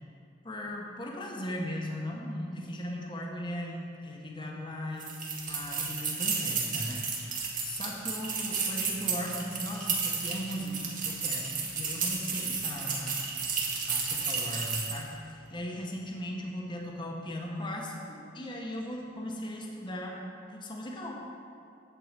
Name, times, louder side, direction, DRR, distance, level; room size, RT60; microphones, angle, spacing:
voice 1, 0.4-5.1 5.5-13.2 13.9-20.2 20.5-21.2, equal, 25° left, -1 dB, 0.9 m, -38 dB
sound 1, 5.0-15.1, right 5 dB, 45° right, 1.5 m, -32 dB
9.3 x 4.7 x 7.3 m, 2.5 s
head